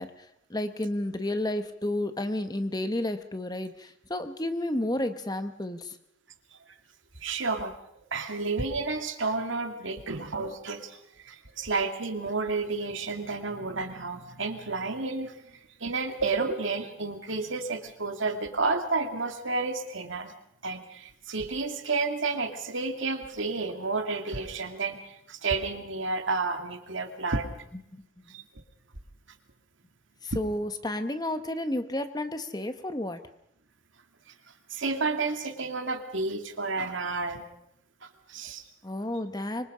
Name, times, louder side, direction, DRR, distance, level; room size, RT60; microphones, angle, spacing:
voice 1, 0.0-6.0 27.9-28.0 30.2-33.2 38.8-39.7, left 1 dB, 20° left, 9 dB, 1.1 m, -31 dB
voice 2, 7.2-7.7 8.1-20.3 20.6-27.5 28.3-28.4 34.3-34.4 34.7-37.5 38.0-38.6, right 3 dB, 70° right, 5 dB, 2.4 m, -31 dB
25.5 x 24.5 x 5.1 m, 0.75 s
head